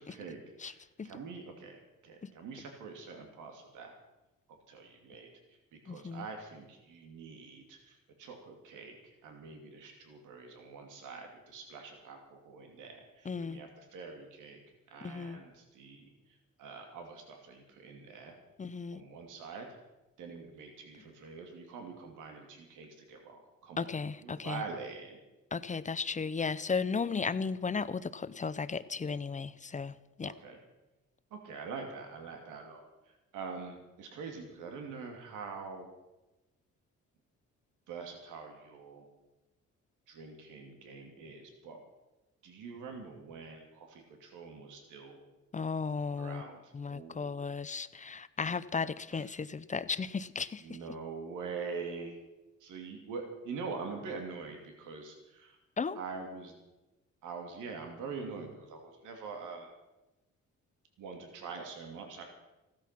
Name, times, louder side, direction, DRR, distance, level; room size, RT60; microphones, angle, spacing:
voice 1, 0.0-3.9 4.7-14.6 14.9-18.4 18.9-19.7 20.2-23.9 24.2-25.2 30.2-30.6 31.3-35.9 37.9-39.1 40.1-41.8 42.4-45.2 46.2-47.4 49.1-49.2 50.6-52.2 52.6-55.6 55.9-56.5 57.2-59.7 61.0-62.2, right 4 dB, 90° right, 3 dB, 2.7 m, -45 dB
voice 2, 5.9-6.3 13.2-13.6 15.0-15.4 18.6-19.0 23.8-24.6 25.5-30.3 45.5-46.5 46.7-50.8 55.8-56.0, left 5 dB, 25° left, 14 dB, 0.7 m, -35 dB
15.5 x 13.0 x 5.9 m, 1.0 s
cardioid pair, 90°, 30 cm